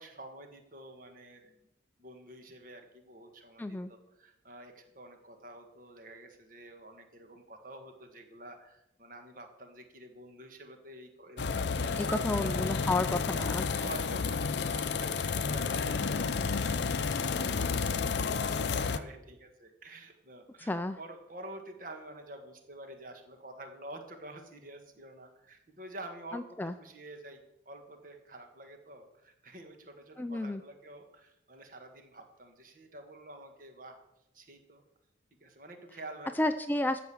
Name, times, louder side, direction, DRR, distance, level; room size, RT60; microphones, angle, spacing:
voice 1, 0.0-1.7 2.0-12.7 13.3-16.8 17.2-34.0 34.3-34.8 35.4-36.3, right 1 dB, 45° right, 5 dB, 1.6 m, -49 dB
voice 2, 3.6-3.9 12.1-13.9 20.6-21.0 26.3-26.7 30.2-30.6 36.4-37.0, left 2 dB, 10° left, 9 dB, 0.3 m, -31 dB
sound 1, 11.4-19.0, left 5 dB, 65° left, 0.6 m, -31 dB
14.0 x 5.1 x 7.1 m, 0.85 s
head